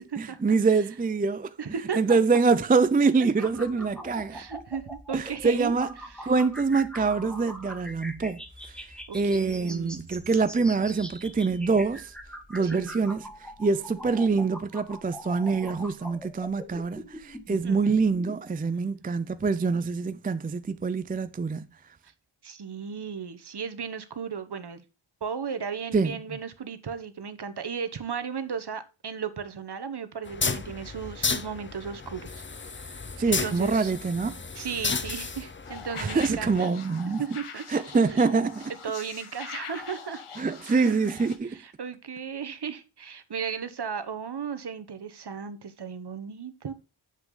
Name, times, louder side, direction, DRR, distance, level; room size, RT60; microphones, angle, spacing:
voice 1, 0.0-1.6 2.0-4.4 5.1-5.9 6.2-8.4 8.7-8.8 9.1-12.1 12.5-21.7 25.9-26.1 33.2-34.4 36.0-37.2 37.7-38.7 40.4-41.6, right 4 dB, 20° right, 0.4 m, -25 dB
voice 2, 1.6-2.2 3.4-3.5 3.8-3.9 4.3-5.7 6.0-6.3 9.1-10.0 12.6-12.9 17.6-18.0 22.0-22.1 22.4-24.8 25.2-33.9 34.5-36.7 37.2-37.6 38.1-38.2 38.8-40.2 40.6-40.9 41.4-46.7, right 6 dB, 50° right, 1.1 m, -35 dB
sound 1, 3.4-18.4, equal, ahead, 1.3 m, -43 dB
sound 2, 30.3-36.6, left 4 dB, 25° left, 0.6 m, -33 dB
sound 3, 35.6-41.4, left 6 dB, 85° left, 1.3 m, -43 dB
7.5 x 6.0 x 3.8 m
wide cardioid pair, 105°, 49 cm